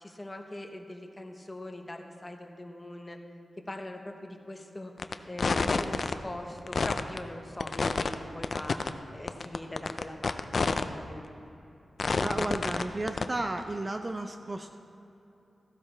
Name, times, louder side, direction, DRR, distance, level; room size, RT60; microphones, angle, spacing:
voice 1, 0.0-3.2 3.7-4.9 5.2-8.8 9.1-10.4 10.9-11.3, left 1 dB, 20° left, 4 dB, 0.9 m, -41 dB
sound 1, 5.0-5.1 5.4-6.1 6.6-7.2 7.6-8.1 8.4-8.9 9.3-10.8 11.2-11.3 12.0-12.8 13.1-13.2, left 4 dB, 50° left, 0.4 m, -28 dB
voice 2, 12.2-14.8, right 2 dB, 25° right, 6 dB, 0.4 m, -33 dB
14.0 x 12.5 x 3.3 m, 3.0 s
wide cardioid pair, 125°, 0 cm